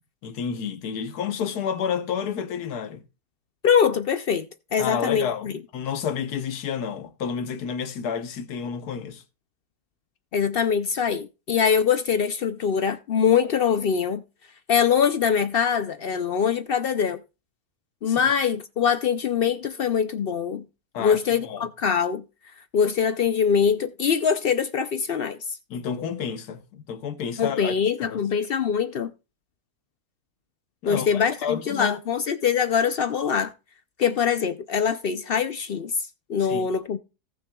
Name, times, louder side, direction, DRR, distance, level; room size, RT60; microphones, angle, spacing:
voice 1, 0.2-3.0 4.8-9.2 18.1-18.2 20.9-21.7 25.7-28.2 30.8-32.0 36.4-36.7, left 7 dB, 85° left, 1.5 m, -30 dB
voice 2, 3.6-4.5 4.7-5.5 10.3-14.2 14.7-17.2 18.0-20.6 21.0-22.2 22.7-25.6 27.4-29.1 30.9-33.5 34.0-37.0, left 7 dB, 70° left, 0.5 m, -23 dB
18.0 x 6.4 x 2.3 m
omnidirectional pair, 1.6 m